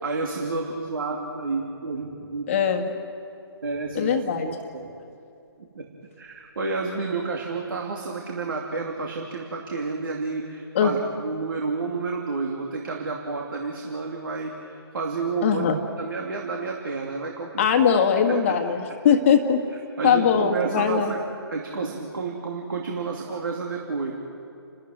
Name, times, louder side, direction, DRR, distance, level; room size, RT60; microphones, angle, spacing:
voice 1, 0.0-2.5 3.6-4.2 4.4-4.9 5.6-5.9 6.2-15.7 15.9-17.7 18.3-18.6 18.9-19.0 20.0-24.1, right 4 dB, 55° right, 0 dB, 2.8 m, -30 dB
voice 2, 2.5-2.9 4.0-4.5 10.8-10.9 15.4-15.7 17.6-19.6 20.0-21.1, left 7 dB, 30° left, 5 dB, 1.8 m, -20 dB
29.5 x 13.5 x 9.3 m, 2.7 s
figure-of-eight pair, 140°, 13 cm